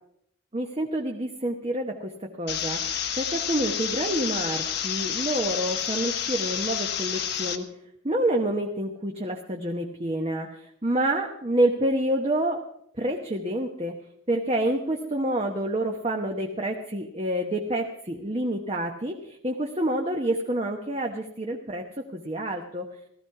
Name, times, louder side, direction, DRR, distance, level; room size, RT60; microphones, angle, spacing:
voice 1, 0.5-2.8 3.2-7.7 8.0-12.6 13.0-14.0 14.3-22.9, right 1 dB, 30° right, 2 dB, 1.1 m, -28 dB
sound 1, 2.5-7.6, left 8 dB, 55° left, 1.1 m, -29 dB
16.5 x 14.0 x 4.8 m, 0.72 s
head